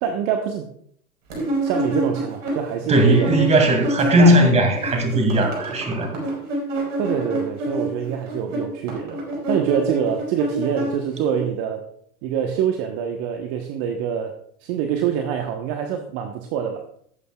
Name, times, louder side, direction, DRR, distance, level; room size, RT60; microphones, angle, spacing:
voice 1, 0.0-0.7 1.6-3.4 4.1-4.5 7.0-11.9 12.2-16.9, right 8 dB, 35° right, 5 dB, 1.1 m, -25 dB
sound 1, 1.3-4.5 4.7-11.4, right 1 dB, 60° right, 4.8 m, -27 dB
voice 2, 2.9-6.1, right 1 dB, 15° right, 4 dB, 2.3 m, -17 dB
17.5 x 8.2 x 2.3 m, 0.66 s
hypercardioid pair, 120°, 43 cm